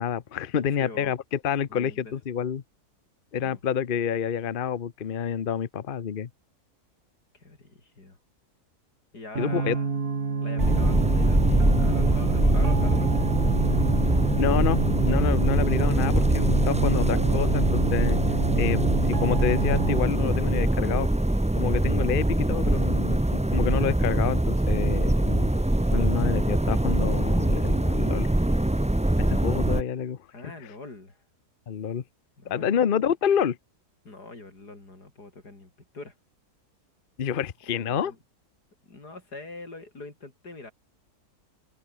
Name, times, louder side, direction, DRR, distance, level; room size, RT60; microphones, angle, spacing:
voice 1, 0.0-2.6 3.3-6.3 9.4-9.8 14.3-18.2 18.6-21.1 21.6-25.5 25.9-28.3 29.2-30.2 30.4-30.5 31.7-32.0 32.5-33.6 37.2-38.1, left 8 dB, 45° left, 0.8 m, -28 dB
voice 2, 0.6-1.1 1.7-2.1 3.4-3.6 7.3-8.2 9.1-10.0 10.4-13.3 22.8-23.3 30.3-31.2 32.4-32.8 34.0-36.1 37.7-38.2 38.9-40.7, left 2 dB, 90° left, 5.9 m, -43 dB
sound 1, 9.4-20.0, right 5 dB, 70° right, 2.9 m, -28 dB
sound 2, 10.6-29.8, right 1 dB, 10° right, 0.4 m, -23 dB
omnidirectional pair, 1.7 m